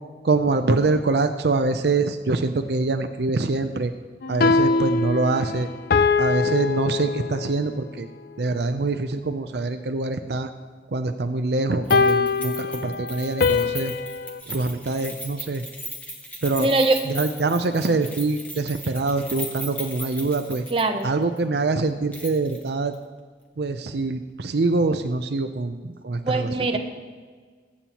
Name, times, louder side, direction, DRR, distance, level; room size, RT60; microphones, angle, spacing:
voice 1, 0.2-3.9 4.3-5.7 6.2-8.1 8.4-10.5 10.9-14.0 14.5-15.6 16.4-16.7 17.1-20.6 21.0-22.9 23.6-26.7, right 3 dB, 65° right, 7 dB, 0.5 m, -24 dB
sound 1, 4.2-7.7 11.9-14.4, left 4 dB, 55° left, 0.4 m, -23 dB
Keys jangling, 11.9-21.0 21.4-21.5 22.1-22.6 22.9-23.0, equal, 10° left, 1.2 m, -37 dB
voice 2, 16.6-17.0 20.7-21.1 26.2-26.8, right 2 dB, 30° right, 5 dB, 0.8 m, -21 dB
21.0 x 8.5 x 3.0 m, 1.5 s
head